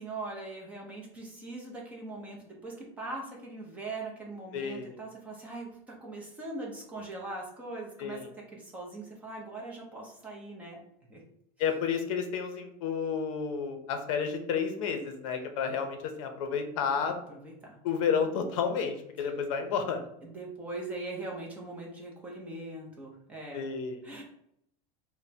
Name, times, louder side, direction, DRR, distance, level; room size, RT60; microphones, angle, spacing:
voice 1, 0.0-8.2 8.5-10.8 11.1-11.2 17.0-17.8 20.2-23.7 24.0-24.2, right 2 dB, 10° right, -2 dB, 0.6 m, -41 dB
voice 2, 4.5-5.0 8.0-8.3 11.6-17.1 17.8-20.0 23.5-24.0, left 6 dB, 60° left, 6 dB, 0.6 m, -31 dB
3.3 x 2.1 x 4.1 m, 0.75 s
supercardioid pair, 175°, 19 cm